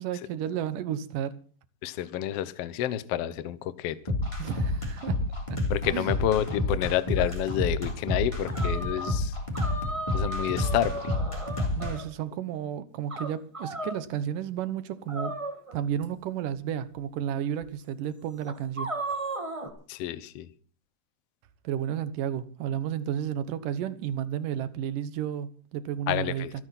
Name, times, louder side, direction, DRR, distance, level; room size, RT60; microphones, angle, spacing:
voice 1, 0.0-1.3 4.4-5.2 5.5-5.6 5.9-6.1 11.8-15.3 15.7-18.9 21.6-26.5, right 10 dB, 85° right, 2.7 m, -32 dB
voice 2, 1.8-4.0 5.7-9.4 10.1-11.1 19.9-20.5 26.1-26.5, left 12 dB, 70° left, 1.5 m, -29 dB
sound 1, 4.1-11.9, left 2 dB, 10° left, 2.8 m, -29 dB
sound 2, 7.2-7.4 8.5-9.2 9.5-12.1 13.1-14.0 15.1-16.0 17.0-17.1 17.6-17.7 18.5-19.7, right 1 dB, 40° right, 0.4 m, -35 dB
26.0 x 9.5 x 4.2 m
omnidirectional pair, 3.7 m